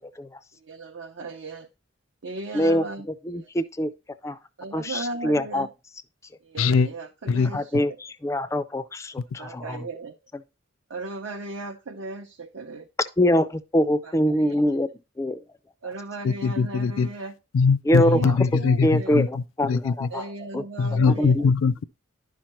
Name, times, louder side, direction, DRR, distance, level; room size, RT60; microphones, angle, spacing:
voice 1, 0.6-1.7 2.2-3.1 3.3-3.5 4.6-5.7 6.4-7.8 9.4-10.1 10.9-12.9 14.0-14.6 15.8-17.3 18.0-19.2 20.1-21.3, right 2 dB, 70° right, 0.7 m, -36 dB
voice 2, 3.3-3.9 4.2-4.4 4.7-5.7 7.5-9.8 13.2-14.9 15.2-15.4 17.9-18.3 18.8-20.2 20.5-20.6 21.2-21.4, equal, 15° left, 0.3 m, -24 dB
voice 3, 6.6-6.9 7.3-7.5 16.2-17.1 17.5-20.1 20.8-21.8, left 5 dB, 80° left, 0.4 m, -22 dB
10.5 x 5.7 x 3.0 m
head